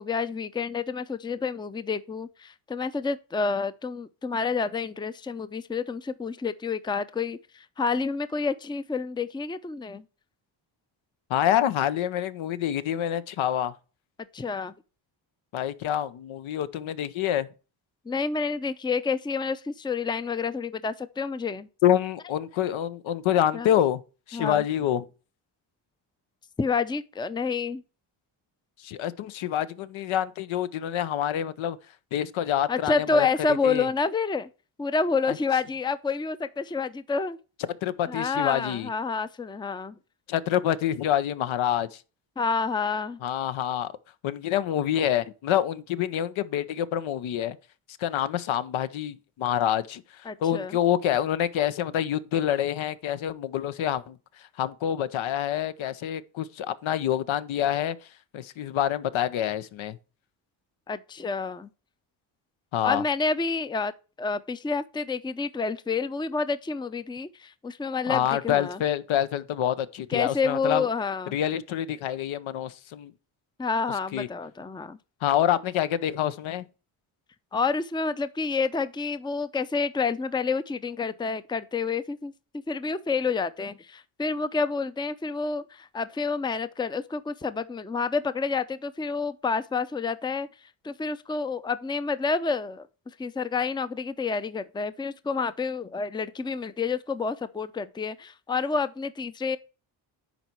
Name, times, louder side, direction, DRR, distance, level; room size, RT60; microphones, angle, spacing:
voice 1, 0.0-10.0 14.3-14.7 18.1-21.7 23.5-23.7 24.3-24.6 26.6-27.8 32.7-34.5 34.8-37.4 38.1-40.0 42.4-43.2 50.3-50.8 60.9-61.7 62.8-63.9 64.2-68.8 70.1-71.3 73.6-75.0 77.5-82.3 82.7-99.6, left 4 dB, 10° left, 0.5 m, -29 dB
voice 2, 11.3-13.8 15.5-17.5 21.8-24.0 24.3-25.0 28.8-31.8 32.1-33.9 35.3-35.4 37.8-38.9 40.3-42.0 43.2-43.9 44.2-47.6 48.0-60.0 62.7-63.0 68.1-70.9 71.3-73.1 74.1-74.3 75.2-76.7, left 11 dB, 70° left, 0.8 m, -27 dB
10.5 x 4.1 x 4.4 m
supercardioid pair, 70°, 48 cm